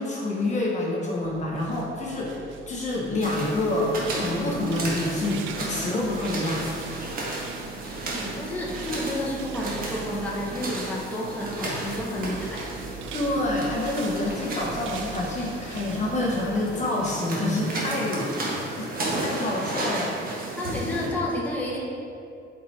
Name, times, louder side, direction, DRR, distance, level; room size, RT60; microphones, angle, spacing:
voice 1, 0.0-2.3 2.7-6.6 13.1-18.3 18.8-20.1, left 2 dB, 35° left, -3 dB, 1.1 m, -27 dB
sound 1, 1.2-16.8, right 5 dB, 75° right, 0.5 m, -42 dB
sound 2, 3.2-21.1, right 2 dB, 45° right, 1.4 m, -33 dB
voice 2, 8.0-12.8 20.6-21.8, left 1 dB, 10° left, -5 dB, 1.2 m, -31 dB
8.3 x 4.5 x 4.3 m, 2.6 s
cardioid pair, 135°, 20 cm